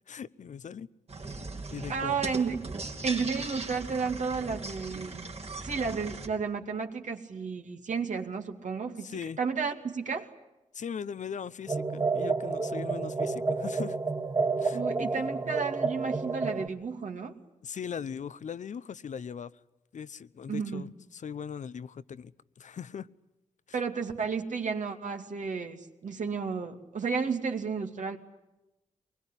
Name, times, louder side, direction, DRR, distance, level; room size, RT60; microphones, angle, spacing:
voice 1, 0.1-0.9 1.7-2.2 9.0-9.4 10.7-14.0 14.6-14.8 17.6-19.5 19.9-23.1 23.7-23.8, left 7 dB, 70° left, 17 dB, 0.8 m, -39 dB
sound 1, 1.1-6.3, right 3 dB, 55° right, 2.9 m, -39 dB
voice 2, 1.9-2.6 3.0-5.3 5.6-10.3 14.7-17.4 20.5-20.9 23.7-28.2, right 5 dB, 70° right, 4 dB, 2.5 m, -32 dB
sound 2, 11.7-16.7, right 4 dB, 35° right, 2.1 m, -30 dB
23.5 x 21.0 x 10.0 m, 0.99 s
cardioid pair, 65°, 13 cm